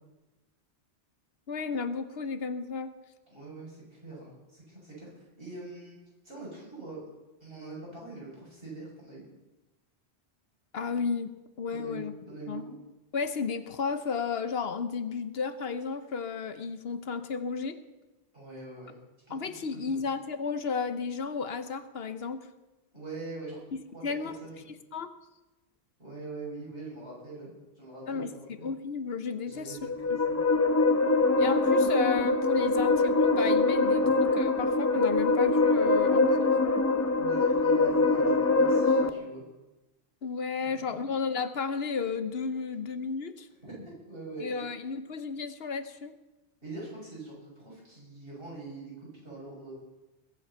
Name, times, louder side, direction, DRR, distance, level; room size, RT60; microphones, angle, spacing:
voice 1, 1.5-2.9 10.7-12.1 12.5-12.6 13.1-17.8 19.3-22.5 24.0-24.4 24.9-25.1 28.1-28.3 28.6-29.9 31.4-36.5 40.2-43.5 44.4-46.1, left 5 dB, 65° left, 11 dB, 1.0 m, -33 dB
voice 2, 3.3-6.0 6.2-7.0 7.4-9.3 11.7-12.0 12.3-12.7 18.3-19.0 19.3-20.0 22.9-23.6 23.9-24.7 26.0-27.5 27.8-28.7 29.4-30.4 34.0-34.1 37.2-39.4 40.6-41.0 43.6-44.7 46.6-49.7, right 2 dB, 55° right, -5 dB, 6.7 m, -43 dB
sound 1, 29.7-39.1, left 3 dB, 15° left, 0.7 m, -24 dB
21.0 x 8.6 x 5.6 m, 1.1 s
omnidirectional pair, 1.1 m